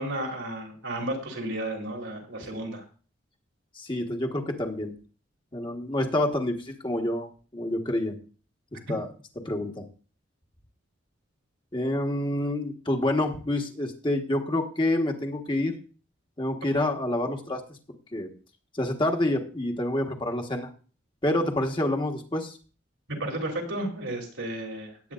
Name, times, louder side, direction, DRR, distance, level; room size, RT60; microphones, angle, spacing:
voice 1, 0.0-2.8 23.1-24.9, right 1 dB, 85° right, 0 dB, 3.2 m, -33 dB
voice 2, 3.8-4.9 5.5-8.2 8.7-9.1 9.3-9.8 11.7-15.8 16.4-17.6 18.1-18.3 18.7-20.7 21.2-22.6, left 1 dB, 25° left, 2 dB, 1.4 m, -28 dB
18.0 x 8.9 x 2.5 m, 0.39 s
head